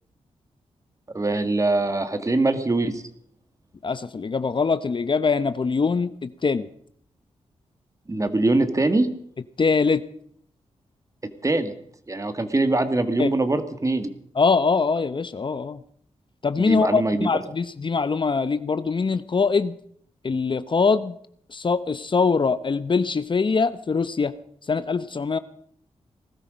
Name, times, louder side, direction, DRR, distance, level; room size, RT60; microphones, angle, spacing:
voice 1, 1.1-3.0 8.1-9.1 11.4-11.7 12.1-14.1 16.6-17.3, right 2 dB, 25° right, 10 dB, 1.9 m, -23 dB
voice 2, 3.8-6.7 9.6-10.0 13.2-13.3 14.3-15.8 16.4-19.7 20.2-21.2 21.5-24.3 24.7-25.4, left 4 dB, 45° left, 13 dB, 0.8 m, -23 dB
19.5 x 13.0 x 5.2 m, 0.64 s
cardioid pair, 60°, 12 cm